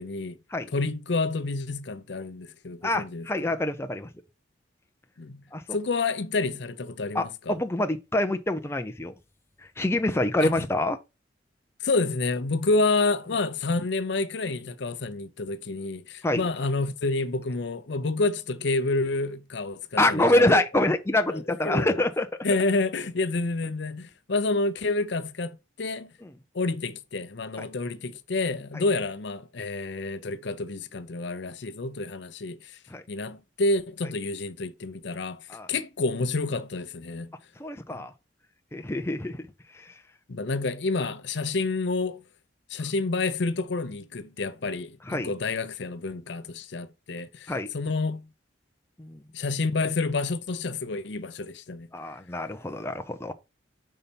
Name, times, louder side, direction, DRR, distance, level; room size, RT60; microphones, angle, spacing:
voice 1, 0.0-0.4 0.7-3.3 5.2-5.4 5.7-7.6 10.4-10.6 11.8-20.6 21.3-22.0 22.4-26.1 26.5-32.8 33.1-37.3 37.9-38.1 40.3-42.2 42.7-48.2 49.3-51.9, left 3 dB, 65° left, 0.6 m, -29 dB
voice 2, 2.8-4.1 5.5-5.6 7.1-9.1 9.6-11.0 16.2-16.4 20.0-22.3 26.2-26.3 27.6-27.7 28.7-28.8 32.9-33.0 35.5-35.7 37.6-38.1 38.7-39.4 39.7-40.0 45.1-45.3 47.5-47.7 49.0-49.2 51.9-53.3, left 1 dB, 15° left, 0.5 m, -26 dB
5.5 x 4.2 x 5.2 m
head